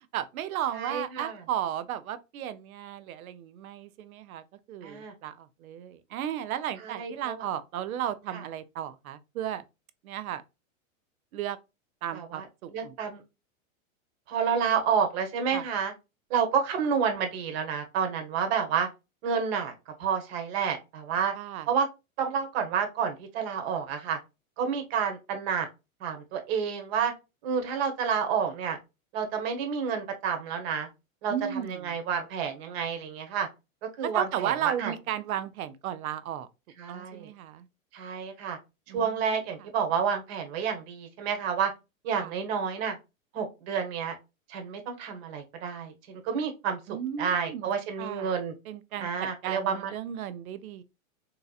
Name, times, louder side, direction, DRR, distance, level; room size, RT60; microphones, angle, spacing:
voice 1, 0.1-4.4 4.7-9.6 10.0-10.4 11.3-11.6 12.0-12.9 15.5-15.6 21.3-21.7 31.3-31.9 34.1-36.5 36.9-37.7 38.9-39.2 42.2-42.3 46.9-47.7 48.0-48.3 48.7-50.8, right 10 dB, 80° right, 0.7 m, -34 dB
voice 2, 0.7-1.4 4.8-5.1 6.8-7.4 8.3-8.4 12.1-13.2 14.3-15.9 16.3-18.9 19.2-19.7 20.0-21.3 21.7-21.9 22.2-24.2 24.6-25.7 26.0-27.1 27.4-28.8 29.1-30.9 31.2-33.5 34.0-34.9 36.8-37.3 37.9-38.6 38.9-41.7 42.0-43.0 43.3-44.2 44.5-46.8 47.2-48.5 49.0-49.9, right 6 dB, 45° right, 1.1 m, -29 dB
3.8 x 2.8 x 2.3 m
hypercardioid pair, 140°, 42 cm